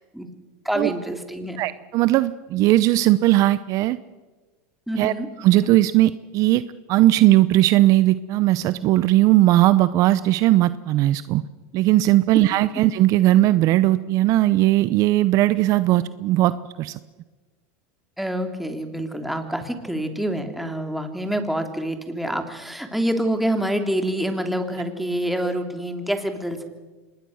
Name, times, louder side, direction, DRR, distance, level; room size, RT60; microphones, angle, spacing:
voice 1, 0.6-1.6 4.9-5.3 18.2-26.6, right 1 dB, ahead, 5 dB, 2.8 m, -26 dB
voice 2, 1.6-4.0 5.0-5.1 5.4-11.4 11.7-16.9, right 15 dB, 50° right, 15 dB, 0.7 m, -18 dB
25.5 x 20.0 x 6.4 m, 1.3 s
supercardioid pair, 115°, 7 cm